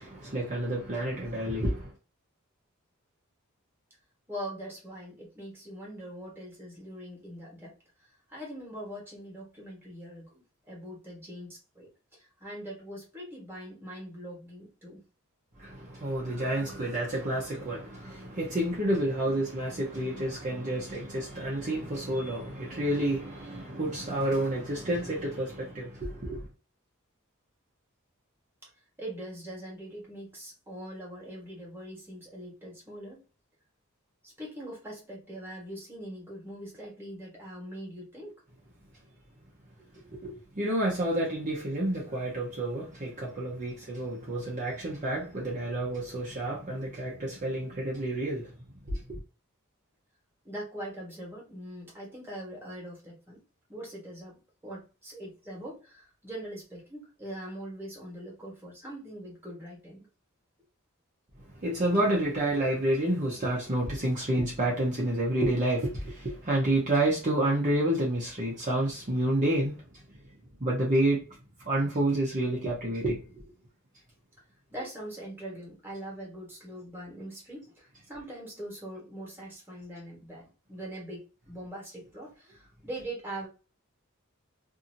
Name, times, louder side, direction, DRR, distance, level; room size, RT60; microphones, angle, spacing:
voice 1, 0.0-1.9 15.6-26.4 40.1-48.5 48.9-49.2 61.6-69.8 70.6-71.3 71.7-73.2, right 1 dB, 40° right, 0.8 m, -29 dB
voice 2, 4.3-7.8 8.3-11.9 12.4-15.0 29.0-33.2 34.2-38.3 50.4-53.4 53.7-60.1 74.7-83.5, right 1 dB, 10° right, 1.3 m, -42 dB
2.7 x 2.6 x 2.6 m
head